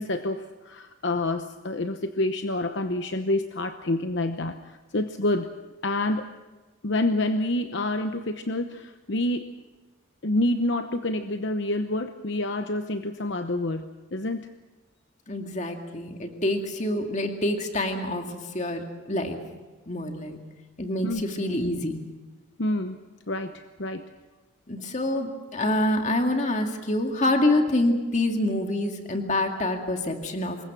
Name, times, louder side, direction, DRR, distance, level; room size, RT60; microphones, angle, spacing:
voice 1, 0.0-4.6 4.9-5.5 5.8-6.3 6.8-9.5 10.2-13.8 14.1-14.5 21.0-21.2 22.6-23.0 23.3-23.5 23.8-24.0, left 1 dB, 60° left, 8 dB, 0.9 m, -27 dB
voice 2, 15.3-18.2 18.5-19.4 19.9-20.4 20.8-22.0 24.7-30.6, left 1 dB, 35° left, 4 dB, 2.1 m, -26 dB
25.5 x 21.5 x 6.2 m, 1.2 s
head